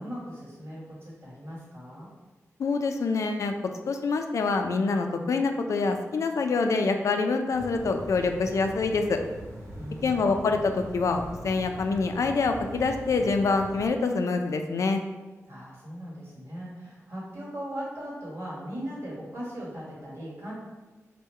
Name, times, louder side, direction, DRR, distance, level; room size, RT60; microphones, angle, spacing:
voice 1, 0.0-2.1 9.8-10.5 15.5-20.5, equal, 55° right, -6 dB, 1.5 m, -39 dB
voice 2, 2.6-3.5 3.9-9.2 10.0-15.0, left 4 dB, 70° left, 5 dB, 0.3 m, -26 dB
sound 1, 7.5-13.9, equal, 75° right, 1.1 m, -42 dB
3.6 x 2.2 x 4.2 m, 1.2 s
wide cardioid pair, 135°, 5 cm